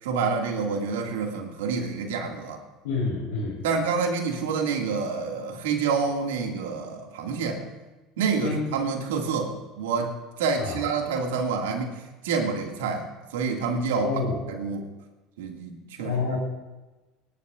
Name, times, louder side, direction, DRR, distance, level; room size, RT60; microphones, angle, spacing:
voice 1, 0.0-2.6 3.6-7.7 8.2-14.1 14.6-14.9 15.4-16.4, right 5 dB, 80° right, 2 dB, 2.2 m, -28 dB
voice 2, 2.8-3.6 8.4-8.7 10.6-10.8 14.0-14.4 16.0-16.4, left 4 dB, 80° left, -5 dB, 3.8 m, -28 dB
23.0 x 11.0 x 2.5 m, 1.1 s
hypercardioid pair, 85°, 0 cm